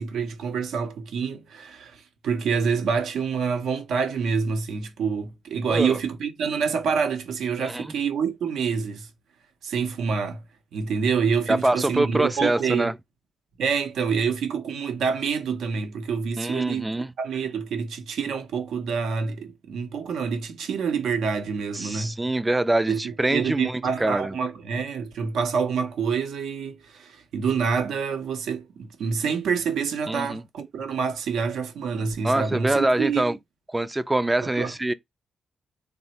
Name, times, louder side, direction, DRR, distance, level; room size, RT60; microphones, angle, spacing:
voice 1, 0.0-9.1 9.6-10.4 10.7-12.9 13.6-16.9 17.2-22.2 22.9-33.2 34.4-34.7, right 6 dB, 80° right, 0.6 m, -27 dB
voice 2, 7.6-7.9 11.5-12.9 16.4-17.1 21.7-24.3 30.1-30.4 32.2-33.4 33.7-34.9, right 2 dB, 20° right, 0.3 m, -24 dB
3.1 x 2.0 x 2.8 m
supercardioid pair, 50°, 0 cm